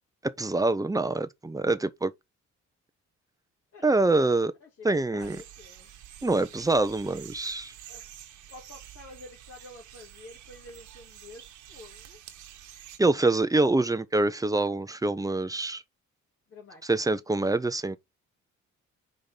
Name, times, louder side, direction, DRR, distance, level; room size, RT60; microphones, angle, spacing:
voice 1, 0.2-2.1 3.8-4.5 4.8-5.4 6.2-7.7 13.0-15.8 16.9-18.0, right 2 dB, 10° right, 0.7 m, -25 dB
voice 2, 3.7-5.9 7.9-8.0 8.5-12.2 16.5-16.8, left 2 dB, 50° left, 2.5 m, -49 dB
sound 1, 5.2-13.0, right 11 dB, 75° right, 1.4 m, -48 dB
5.2 x 3.8 x 5.7 m
cardioid pair, 90°, 30 cm